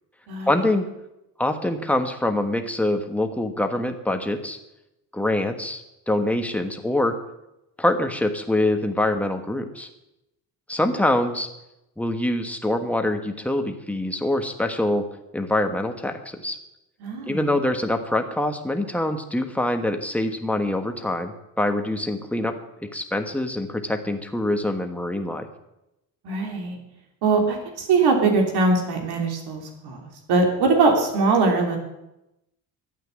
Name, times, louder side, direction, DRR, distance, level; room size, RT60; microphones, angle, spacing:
voice 1, 0.5-0.9 1.4-4.6 5.1-7.1 7.8-9.9 10.7-11.5 12.0-15.1 15.3-16.6 17.3-21.3 21.6-22.5 22.8-25.5, left 1 dB, 5° left, 5 dB, 1.4 m, -24 dB
voice 2, 17.0-17.5 26.2-26.8 27.2-31.8, right 3 dB, 75° right, 2 dB, 3.4 m, -21 dB
12.0 x 8.7 x 9.6 m, 0.90 s
cardioid pair, 140°, 39 cm